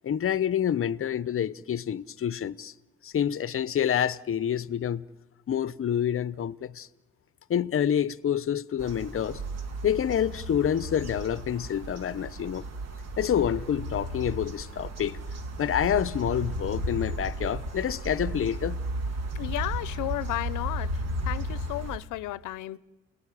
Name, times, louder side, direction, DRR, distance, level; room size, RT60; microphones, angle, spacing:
voice 1, 0.0-2.7 3.0-5.0 5.5-6.9 7.5-9.4 9.8-12.6 13.2-15.2 15.6-18.8, left 9 dB, 45° left, 0.8 m, -27 dB
sound 1, 8.8-22.0, right 1 dB, 60° right, 2.9 m, -34 dB
voice 2, 19.3-20.9 21.2-22.8, left 15 dB, 90° left, 0.8 m, -33 dB
30.0 x 19.5 x 10.0 m
cardioid pair, 90°, 30 cm